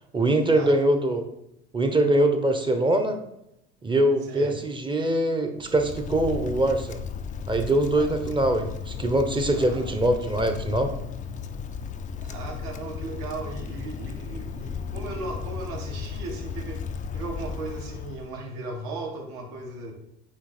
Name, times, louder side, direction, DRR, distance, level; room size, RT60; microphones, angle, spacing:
voice 1, 0.1-1.2 1.7-3.2 3.8-7.0 7.5-10.9, right 1 dB, 15° right, 6 dB, 0.8 m, -23 dB
voice 2, 4.2-4.5 7.9-8.1 9.5-9.9 12.2-16.8 17.1-19.9, right 3 dB, 70° right, 1 dB, 1.7 m, -37 dB
Wind, 5.6-18.4, left 6 dB, 25° left, 0.4 m, -35 dB
8.3 x 2.9 x 4.3 m, 0.80 s
supercardioid pair, 95°, 33 cm